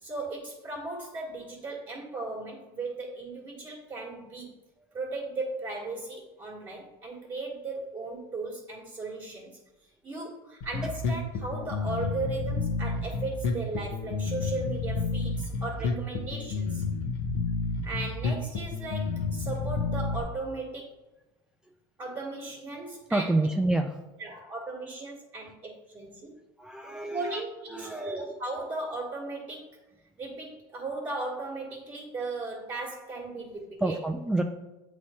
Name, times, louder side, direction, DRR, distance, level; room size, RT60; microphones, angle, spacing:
voice 1, 0.0-4.5 4.9-9.6 10.0-16.8 17.8-20.9 22.0-23.3 24.2-26.3 26.8-29.8 30.2-34.0, right 3 dB, 25° right, -5 dB, 1.5 m, -37 dB
Bass guitar, 10.6-20.2, left 4 dB, 60° left, 1.0 m, -30 dB
voice 2, 23.1-24.0 26.6-27.4 27.7-28.3 33.8-34.4, right 2 dB, 5° right, 3 dB, 0.3 m, -28 dB
8.0 x 3.2 x 4.2 m, 1.0 s
supercardioid pair, 110°, 13 cm